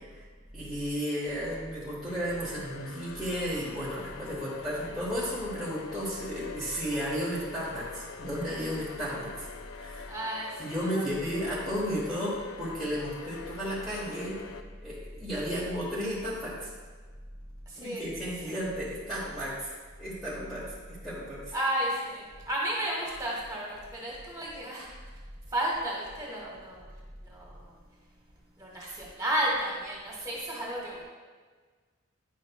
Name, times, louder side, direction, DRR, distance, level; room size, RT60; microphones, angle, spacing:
voice 1, 0.5-9.5 9.7-10.1 10.6-14.4 14.8-16.7 17.8-19.7 20.0-20.8 21.0-21.5, equal, ahead, -10 dB, 1.1 m, -33 dB
sound 1, 2.1-14.6, left 6 dB, 85° left, 0.5 m, -44 dB
voice 2, 10.1-11.0 17.7-18.0 18.4-18.6 21.5-24.8 25.5-26.8 27.2-27.7 28.6-31.0, right 1 dB, 15° right, -4 dB, 1.5 m, -33 dB
9.9 x 6.2 x 2.2 m, 1.5 s
head